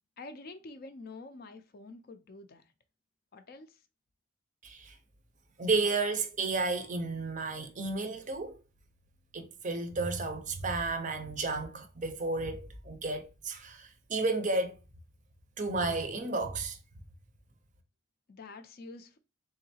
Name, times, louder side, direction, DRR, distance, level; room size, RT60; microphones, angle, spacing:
voice 1, 0.2-2.6 3.3-3.7 18.3-19.2, left 3 dB, 45° left, 0.4 m, -47 dB
voice 2, 4.6-4.9 5.6-8.6 9.3-14.8 15.6-16.8, right 3 dB, 35° right, 0.5 m, -32 dB
3.7 x 3.2 x 2.7 m
head